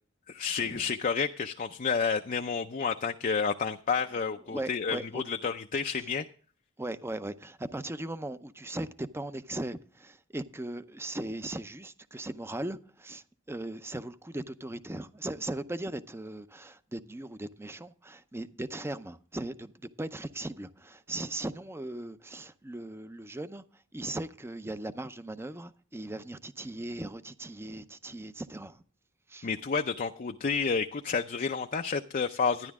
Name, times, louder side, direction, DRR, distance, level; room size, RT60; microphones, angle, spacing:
voice 1, 0.3-6.3 29.4-32.7, left 5 dB, 40° left, 0.5 m, -30 dB
voice 2, 4.5-5.2 6.8-23.6 23.9-28.8 29.3-29.5, right 1 dB, 10° right, 0.6 m, -38 dB
12.5 x 10.5 x 3.6 m
head